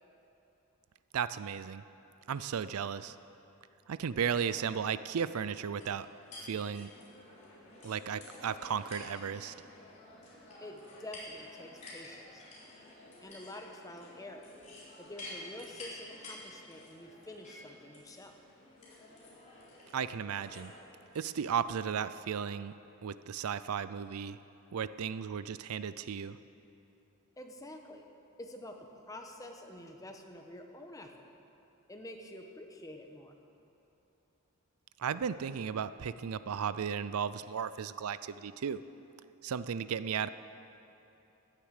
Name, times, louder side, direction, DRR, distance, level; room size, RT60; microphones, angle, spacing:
voice 1, 1.1-1.8 2.3-3.2 3.9-6.1 6.4-6.9 7.8-9.5 19.9-20.7 21.1-22.8 23.0-24.4 24.7-26.4 35.0-38.8 39.4-40.3, right 7 dB, 85° right, 15 dB, 0.4 m, -35 dB
sound 1, 5.8-21.2, left 2 dB, 35° left, 4.0 m, -51 dB
voice 2, 10.6-12.4 13.2-14.4 15.0-18.3 27.4-28.0 28.4-28.8 29.1-31.3 31.9-33.3, left 1 dB, 15° left, 3 dB, 1.2 m, -48 dB
15.5 x 10.5 x 6.6 m, 2.9 s
head